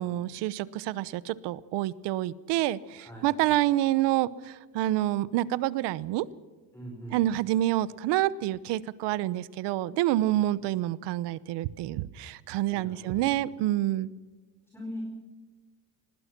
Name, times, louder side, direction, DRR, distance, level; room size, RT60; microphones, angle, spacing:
voice 1, 0.0-6.3 7.1-14.1, right 14 dB, 90° right, 18 dB, 1.0 m, -28 dB
voice 2, 3.0-3.3 6.7-7.2 12.7-13.4 14.7-15.0, equal, 5° left, -1 dB, 4.7 m, -41 dB
25.5 x 20.0 x 6.1 m, 1.3 s
cardioid pair, 155°, 40 cm